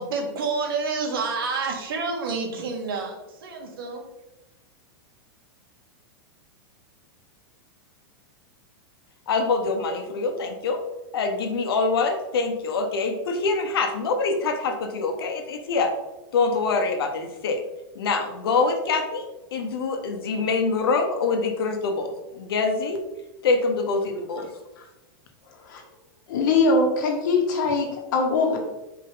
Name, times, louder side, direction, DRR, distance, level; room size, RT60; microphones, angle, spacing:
voice 1, 0.0-4.1, right 4 dB, 70° right, 1 dB, 1.8 m, -29 dB
voice 2, 9.3-10.8 11.1-15.9 16.3-17.6 17.9-19.3 19.5-23.0 23.4-24.5, left 4 dB, 80° left, 5 dB, 1.3 m, -25 dB
voice 3, 26.3-28.6, left 3 dB, 55° left, 2 dB, 1.5 m, -22 dB
5.8 x 4.9 x 3.9 m, 0.99 s
supercardioid pair, 175°, 12 cm